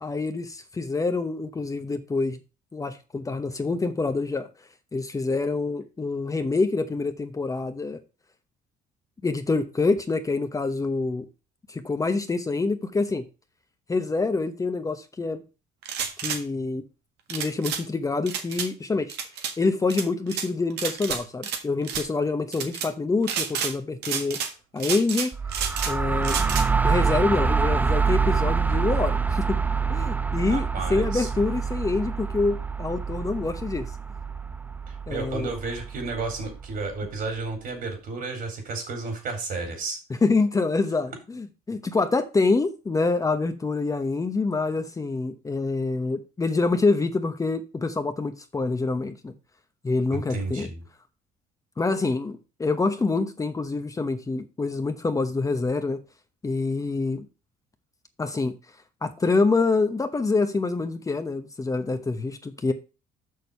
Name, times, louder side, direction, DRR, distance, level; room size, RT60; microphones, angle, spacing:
voice 1, 0.0-2.4 2.7-4.5 4.9-8.0 9.2-11.3 11.7-13.2 13.9-15.4 16.2-16.8 17.3-19.1 19.6-24.4 24.7-25.3 25.9-26.4 26.8-29.6 29.9-33.9 35.1-35.5 40.2-49.3 49.8-50.7 51.8-56.0 56.4-57.3 58.2-58.5 59.0-62.7, left 3 dB, 20° left, 0.9 m, -26 dB
Pump Action Shotgun Cycle, 15.8-16.4 17.3-17.8 18.3-18.7 19.1-19.5 19.9-20.5 20.8-21.6 21.8-22.1 22.5-22.9 23.2-23.7 24.0-24.5 24.8-25.9 26.2-26.7, right 7 dB, 80° right, 1.7 m, -30 dB
sound 1, 25.3-37.0, right 5 dB, 10° right, 0.3 m, -26 dB
voice 2, 30.5-31.3 34.9-40.0 50.1-50.8, right 3 dB, 60° right, 4.3 m, -32 dB
6.5 x 6.4 x 5.5 m
cardioid pair, 110°, 17 cm